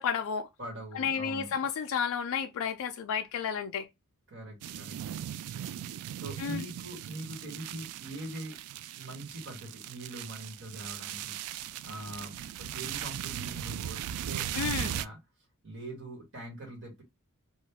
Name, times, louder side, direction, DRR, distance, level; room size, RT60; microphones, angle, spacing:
voice 1, 0.0-0.5 0.9-3.9 6.4-6.6 14.5-14.9, left 7 dB, 65° left, 0.4 m, -32 dB
voice 2, 0.6-1.5 4.3-5.1 6.2-8.6 9.0-11.4 11.8-15.2 15.6-17.0, right 1 dB, 60° right, 1.4 m, -43 dB
sound 1, 4.6-15.1, right 10 dB, 80° right, 0.3 m, -38 dB
2.9 x 2.4 x 3.4 m
head